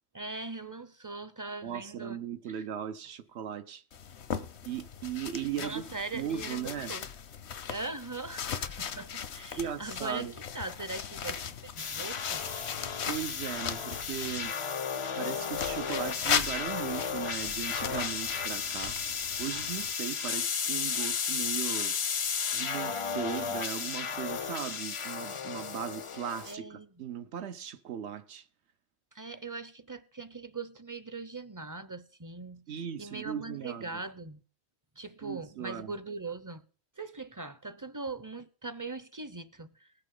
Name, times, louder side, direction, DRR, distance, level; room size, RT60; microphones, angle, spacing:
voice 1, 0.1-2.2 2.5-2.7 5.6-7.1 7.7-11.4 11.7-12.4 26.5-26.9 29.1-34.4 35.0-36.7 37.0-39.9, right 3 dB, 25° right, 0.5 m, -41 dB
voice 2, 1.6-3.8 4.6-5.9 6.1-6.9 9.6-10.3 13.1-14.5 15.2-19.0 19.4-21.9 22.5-28.5 32.7-34.0 35.2-35.9, right 9 dB, 90° right, 1.1 m, -37 dB
sound 1, 3.9-14.5 15.5-19.9, left 7 dB, 80° left, 1.1 m, -38 dB
sound 2, 11.8-26.5, left 6 dB, 45° left, 0.4 m, -34 dB
20.0 x 6.8 x 3.8 m
omnidirectional pair, 1.1 m